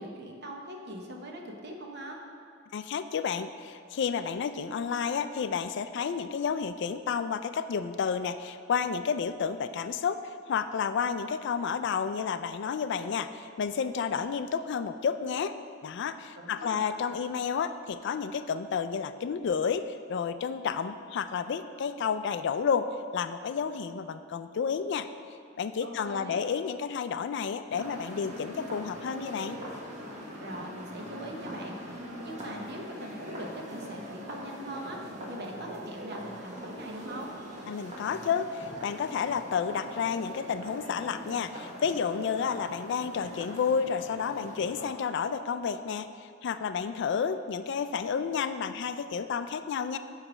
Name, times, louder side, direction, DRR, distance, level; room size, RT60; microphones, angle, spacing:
voice 1, 0.0-2.2 16.4-16.8 25.8-26.4 30.4-35.0 35.3-37.3, right 1 dB, 55° right, 1 dB, 0.9 m, -41 dB
voice 2, 2.7-25.1 25.6-29.6 37.7-46.1 46.4-50.0, left 6 dB, 60° left, 11 dB, 0.3 m, -31 dB
sound 1, 27.7-44.9, equal, 35° right, 1.2 m, -42 dB
9.7 x 3.3 x 6.1 m, 2.3 s
head